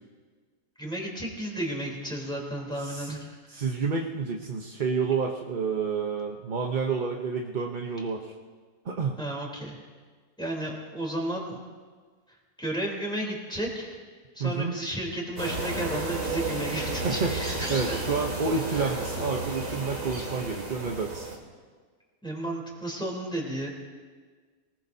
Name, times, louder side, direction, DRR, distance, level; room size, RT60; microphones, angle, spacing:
voice 1, 0.8-3.3 9.2-9.8 10.4-11.6 12.6-14.0 14.3-18.0 18.7-18.9 22.2-23.7, right 1 dB, 5° left, -1 dB, 3.3 m, -33 dB
voice 2, 2.8-3.1 3.5-8.3 8.8-9.2 14.4-14.7 17.0-17.3 17.7-21.3, right 5 dB, 40° right, 1 dB, 0.8 m, -29 dB
sound 1, 15.4-21.4, right 2 dB, 55° right, 2.7 m, -32 dB
25.5 x 19.0 x 2.7 m, 1.5 s
omnidirectional pair, 1.7 m